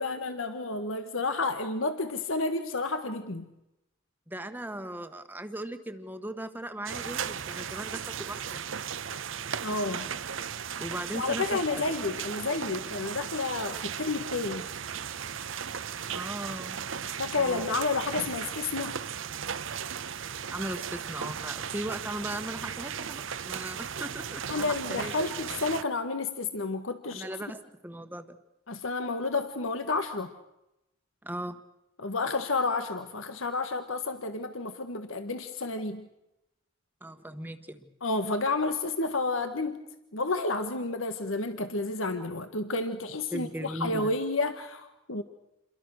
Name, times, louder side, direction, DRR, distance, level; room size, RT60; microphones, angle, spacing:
voice 1, 0.0-3.5 9.6-10.1 11.1-14.6 17.2-19.0 24.5-27.3 28.7-30.3 32.0-36.1 38.0-39.8 40.1-45.2, left 3 dB, 85° left, 8 dB, 1.6 m, -30 dB
voice 2, 4.3-8.8 10.8-11.9 16.1-16.9 17.4-17.7 20.5-25.3 27.1-28.4 31.2-31.6 37.0-37.9 43.3-44.1, right 1 dB, 10° right, 8 dB, 1.3 m, -38 dB
sound 1, 6.9-25.8, right 7 dB, 75° right, 0.9 m, -36 dB
28.5 x 23.0 x 6.5 m, 0.90 s
head